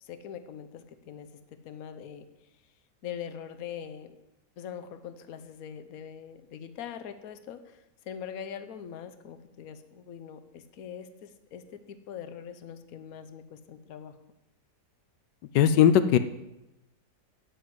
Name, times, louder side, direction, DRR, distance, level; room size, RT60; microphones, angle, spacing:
voice 1, 0.0-1.3 1.6-2.3 3.0-4.2 4.6-7.8 8.0-14.1, left 8 dB, 60° left, 9 dB, 1.3 m, -42 dB
voice 2, 15.5-16.2, left 9 dB, 90° left, 11 dB, 1.3 m, -19 dB
9.5 x 8.4 x 8.0 m, 0.94 s
omnidirectional pair, 1.8 m